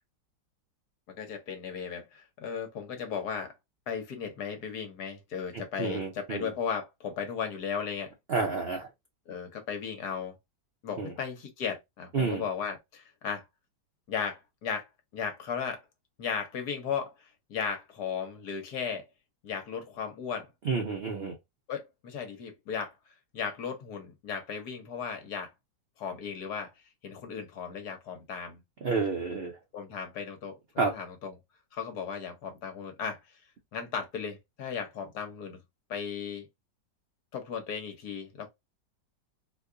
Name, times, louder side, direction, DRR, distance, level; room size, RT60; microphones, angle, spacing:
voice 1, 1.2-3.5 3.9-8.1 9.3-10.4 10.8-13.4 14.1-14.9 15.1-15.8 16.2-19.1 19.4-20.5 21.7-22.9 23.3-25.5 26.0-26.7 27.0-28.6 29.7-31.3 31.7-33.2 33.7-35.6 35.9-36.5 37.3-38.5, left 6 dB, 65° left, 1.4 m, -36 dB
voice 2, 5.5-6.5 8.3-8.9 11.0-11.1 12.1-12.4 20.6-21.4 28.8-29.6 30.8-30.9, right 4 dB, 65° right, 0.6 m, -30 dB
3.1 x 2.3 x 3.6 m
omnidirectional pair, 1.9 m